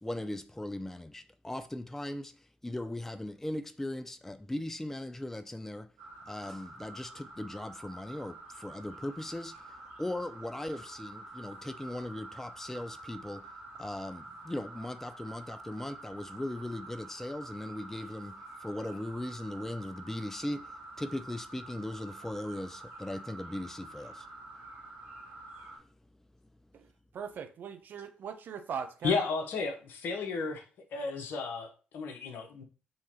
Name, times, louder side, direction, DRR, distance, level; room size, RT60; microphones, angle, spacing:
voice 1, 0.0-5.9 6.3-13.5 13.8-24.3 25.7-25.9, left 1 dB, 10° left, 0.4 m, -39 dB
sound 1, 6.0-25.8, right 2 dB, 80° right, 1.5 m, -48 dB
voice 2, 26.7-29.2, right 7 dB, 60° right, 0.7 m, -40 dB
voice 3, 29.0-30.6 30.9-32.6, left 4 dB, 65° left, 1.0 m, -33 dB
5.5 x 3.0 x 2.9 m
hypercardioid pair, 50°, 4 cm